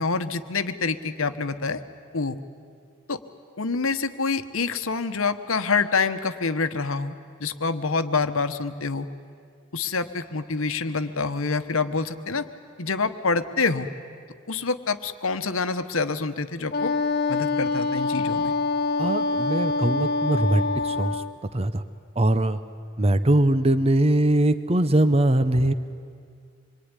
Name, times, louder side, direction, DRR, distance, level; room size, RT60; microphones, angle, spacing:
voice 1, 0.0-1.8 2.1-2.4 3.1-3.2 3.6-7.1 7.4-9.1 9.7-12.5 12.8-13.9 14.5-16.9 17.3-18.5, left 4 dB, 75° left, 10 dB, 1.2 m, -26 dB
Wind instrument woodwind instrument, 16.7-21.4, left 3 dB, 45° left, 0.7 m, -25 dB
voice 2, 19.0-21.2 21.5-21.8 22.2-22.6 23.0-25.7, right 1 dB, 30° right, 12 dB, 0.7 m, -21 dB
26.0 x 22.5 x 9.8 m, 2.2 s
head